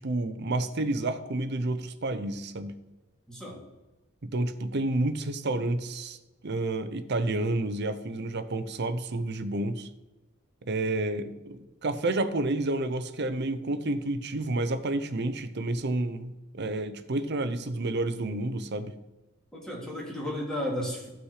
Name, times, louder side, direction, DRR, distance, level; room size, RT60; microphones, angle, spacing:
voice 1, 0.0-2.8 4.2-6.2 6.4-9.9 10.6-18.9, right 2 dB, 55° right, 10 dB, 0.7 m, -30 dB
voice 2, 3.3-3.6 19.5-21.1, left 1 dB, 5° left, -4 dB, 3.0 m, -33 dB
13.5 x 5.9 x 4.9 m, 1.1 s
head